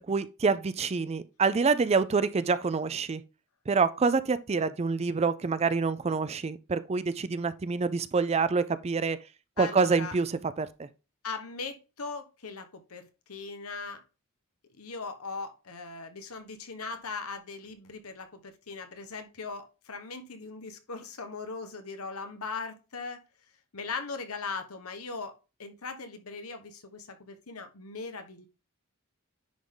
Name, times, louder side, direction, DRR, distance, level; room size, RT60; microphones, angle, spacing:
voice 1, 0.1-3.2 3.7-9.2 9.6-10.9, right 4 dB, 30° right, 0.4 m, -27 dB
voice 2, 9.6-10.1 11.2-14.0 14.8-23.2 23.7-25.3 25.6-28.5, left 4 dB, 85° left, 1.2 m, -39 dB
10.0 x 3.6 x 3.8 m
head